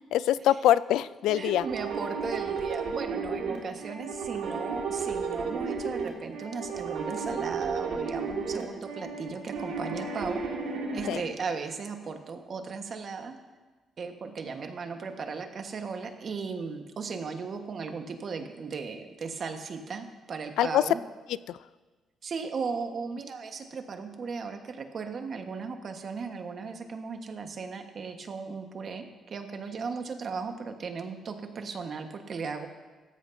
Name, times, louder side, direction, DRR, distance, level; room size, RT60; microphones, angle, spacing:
voice 1, 0.0-1.6 11.1-11.2 20.6-20.8 21.5-21.6, left 12 dB, 85° left, 17 dB, 0.3 m, -24 dB
voice 2, 1.3-13.3 14.0-21.0 22.2-32.7, right 5 dB, 50° right, 5 dB, 1.3 m, -36 dB
sound 1, 1.3-11.1, right 5 dB, 85° right, 2.0 m, -33 dB
16.5 x 14.0 x 2.7 m, 1.3 s
cardioid pair, 90°, 0 cm